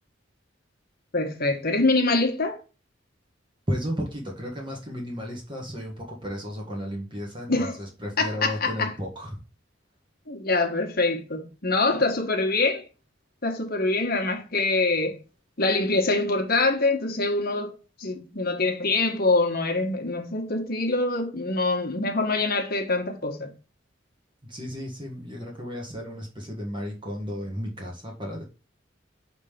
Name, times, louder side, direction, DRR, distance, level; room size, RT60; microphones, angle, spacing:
voice 1, 1.1-2.6 7.5-7.8 8.2-8.9 10.3-12.8 13.4-15.2 15.6-17.7 18.0-23.5, left 3 dB, 55° left, 1.3 m, -24 dB
voice 2, 3.7-9.4 24.4-28.4, equal, 25° right, 1.5 m, -33 dB
6.3 x 3.7 x 4.9 m
head